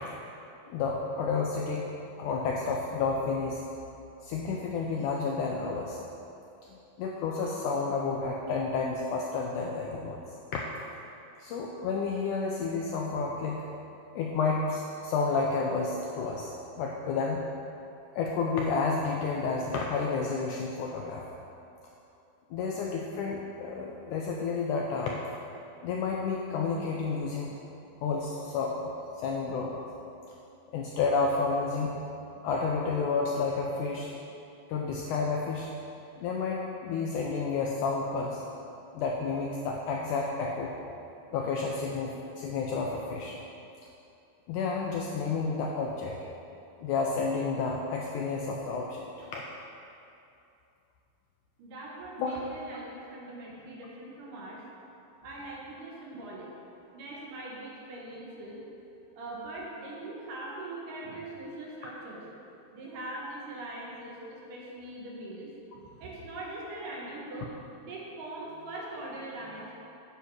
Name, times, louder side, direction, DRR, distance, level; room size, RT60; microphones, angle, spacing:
voice 1, 0.6-1.9 2.2-3.6 4.2-6.0 6.7-10.2 11.4-13.7 14.1-17.5 18.2-21.3 22.5-25.2 25.8-27.5 28.0-29.8 30.7-32.0 32.4-34.1 34.7-35.7 36.2-38.4 38.9-40.8 41.3-43.4 44.5-46.2 46.8-49.0 49.3-49.4 52.2-52.4, left 4 dB, 90° left, -1 dB, 1.8 m, -30 dB
voice 2, 51.6-54.6 55.2-56.5 56.9-58.7 59.2-67.5 67.8-69.7, right 2 dB, 65° right, -4 dB, 2.7 m, -41 dB
9.3 x 6.7 x 4.7 m, 2.7 s
omnidirectional pair, 4.2 m